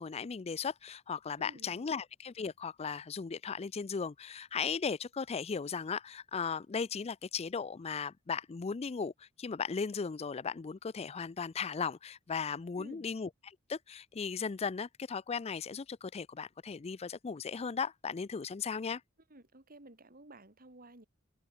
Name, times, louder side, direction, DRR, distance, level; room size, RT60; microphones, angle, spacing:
voice 1, 0.0-19.0, left 5 dB, 30° left, 0.4 m, -37 dB
voice 2, 1.4-1.9 12.8-13.1 19.3-21.1, right 1 dB, 45° right, 4.1 m, -54 dB
head